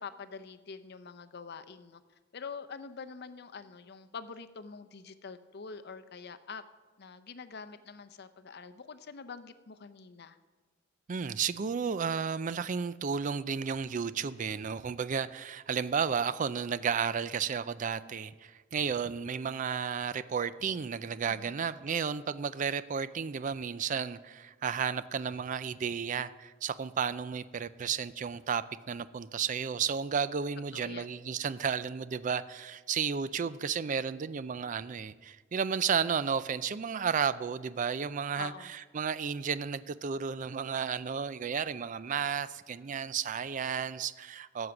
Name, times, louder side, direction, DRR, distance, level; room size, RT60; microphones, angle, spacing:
voice 1, 0.0-2.0 2.3-6.6 7.0-10.4 21.3-21.6 30.7-31.1 38.4-38.7, left 5 dB, 55° left, 10 dB, 0.6 m, -45 dB
voice 2, 11.1-44.7, right 6 dB, 40° right, 15 dB, 0.4 m, -33 dB
12.5 x 8.1 x 6.0 m, 1.3 s
head